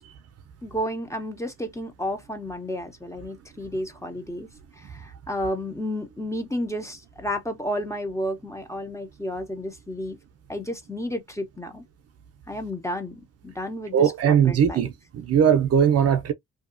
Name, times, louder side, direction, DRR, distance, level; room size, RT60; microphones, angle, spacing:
voice 1, 0.6-4.5 4.8-10.2 10.5-11.8 12.5-14.9, equal, 10° left, 0.7 m, -32 dB
voice 2, 13.9-16.3, right 8 dB, 55° right, 0.6 m, -20 dB
2.7 x 2.2 x 2.5 m
cardioid pair, 90°, 30 cm